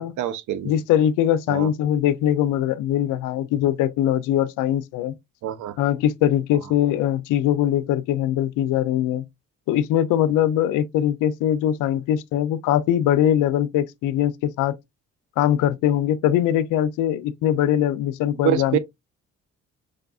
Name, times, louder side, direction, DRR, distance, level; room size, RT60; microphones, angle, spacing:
voice 1, 0.0-0.7 1.5-1.7 5.4-5.7 18.4-18.8, right 11 dB, 75° right, 0.6 m, -25 dB
voice 2, 0.6-5.1 5.8-9.2 9.7-14.8 15.4-18.8, left 11 dB, 90° left, 0.5 m, -21 dB
4.8 x 2.3 x 2.3 m
cardioid pair, 90°, 30 cm